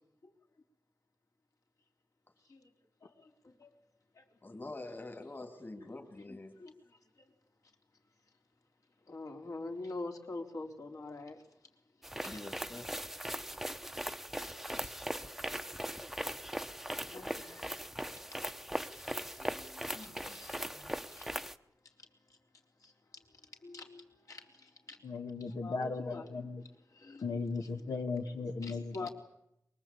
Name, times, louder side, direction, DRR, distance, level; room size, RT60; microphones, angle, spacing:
voice 1, 3.0-3.7 4.1-4.3 6.6-7.3 9.1-11.4 12.0-12.4 14.7-14.8 17.1-17.9 18.1-21.3 22.0-22.4 22.8-25.1 25.4-27.7 28.6-29.1, left 3 dB, 65° left, 2 dB, 3.9 m, -47 dB
voice 2, 4.4-6.5 12.2-12.9 14.7-15.0 17.1-17.2, left 2 dB, 30° left, 5 dB, 2.9 m, -46 dB
sound 1, 12.0-21.6, equal, 5° right, 0.9 m, -39 dB
voice 3, 25.0-26.6 27.2-29.1, left 4 dB, 85° left, 2 dB, 2.0 m, -37 dB
23.5 x 22.0 x 8.6 m, 0.81 s
wide cardioid pair, 95°, 6 cm